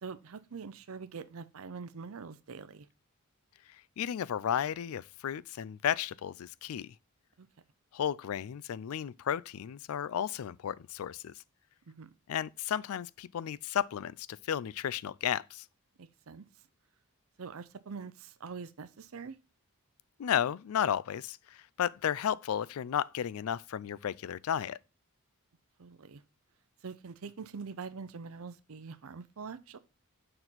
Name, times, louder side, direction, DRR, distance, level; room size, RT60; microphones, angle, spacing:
voice 1, 0.0-2.9 7.4-7.5 11.9-12.1 16.0-16.5 17.4-19.4 25.8-26.2 26.8-29.8, right 5 dB, 65° right, 0.6 m, -44 dB
voice 2, 4.0-6.9 7.9-11.3 12.3-15.6 20.2-24.8, left 9 dB, 70° left, 0.4 m, -33 dB
6.6 x 4.3 x 4.0 m
head